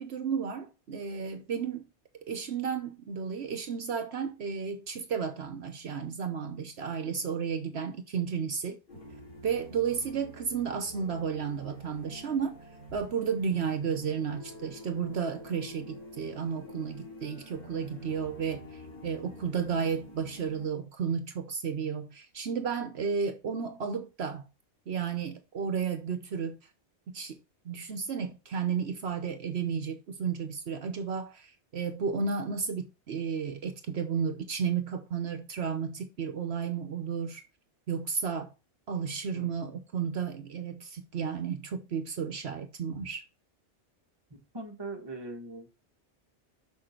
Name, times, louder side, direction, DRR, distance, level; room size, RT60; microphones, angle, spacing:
voice 1, 0.0-1.8 2.2-8.8 9.4-12.6 12.9-18.7 19.0-24.4 24.9-26.6 27.1-27.4 27.6-37.4 37.9-38.5 38.9-43.2, right 6 dB, 65° right, 1.1 m, -33 dB
sound 1, 8.9-20.7, left 1 dB, 50° left, 2.5 m, -48 dB
voice 2, 44.3-45.7, right 2 dB, 20° right, 1.3 m, -41 dB
6.4 x 5.8 x 4.4 m
omnidirectional pair, 1.2 m